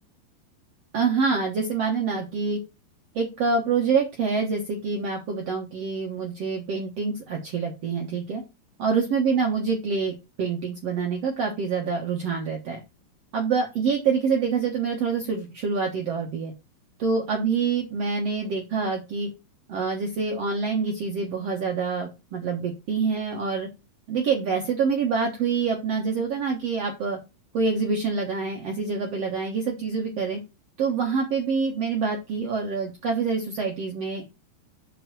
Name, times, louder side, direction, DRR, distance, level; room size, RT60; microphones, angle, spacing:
voice 1, 0.9-2.6 3.1-8.4 8.8-12.8 13.3-16.5 17.0-19.3 19.7-23.7 24.1-27.2 27.5-30.4 30.8-34.4, right 5 dB, 70° right, 1 dB, 1.5 m, -26 dB
6.3 x 5.9 x 6.1 m, 0.27 s
omnidirectional pair, 5.1 m